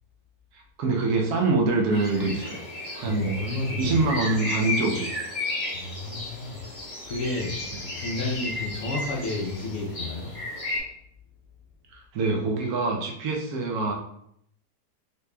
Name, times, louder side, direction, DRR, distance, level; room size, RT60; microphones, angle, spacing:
voice 1, 0.5-2.6 2.9-3.4 3.8-5.1 7.7-7.8 11.9-13.9, right 3 dB, 70° right, 0 dB, 1.1 m, -25 dB
sound 1, 1.9-10.8, left 2 dB, 45° left, 1.5 m, -34 dB
voice 2, 3.0-3.9 5.7-6.6 7.1-7.6 8.0-10.3, left 2 dB, 65° left, -3 dB, 0.8 m, -31 dB
4.0 x 3.0 x 2.2 m, 0.71 s
omnidirectional pair, 1.8 m